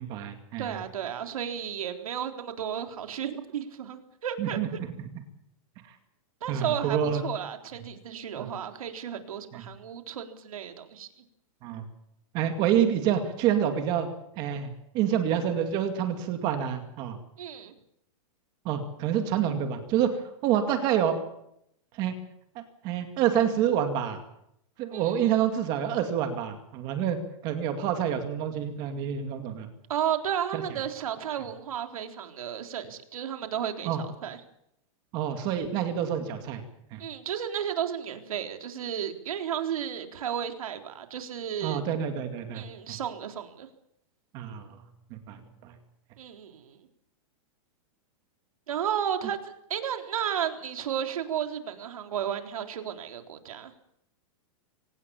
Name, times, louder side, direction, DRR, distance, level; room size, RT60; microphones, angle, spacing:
voice 1, 0.0-0.8 4.4-4.7 6.5-7.2 8.4-8.5 9.5-9.6 11.6-11.8 12.3-14.1 14.4-14.7 14.9-17.2 18.6-21.2 21.9-22.1 22.6-24.2 24.8-27.2 27.4-29.7 30.5-30.6 33.8-34.0 35.1-36.6 36.9-37.0 41.6-43.0 44.3-44.8 45.1-45.7, right 9 dB, 25° right, 7 dB, 2.3 m, -28 dB
voice 2, 0.6-4.8 6.4-7.0 7.2-11.1 17.4-17.7 24.9-25.3 29.9-34.0 34.2-34.4 37.0-41.8 42.5-43.7 46.2-46.7 48.7-53.7, right 9 dB, 90° right, 6 dB, 3.9 m, -33 dB
24.5 x 18.5 x 7.2 m, 0.77 s
supercardioid pair, 180°, 18 cm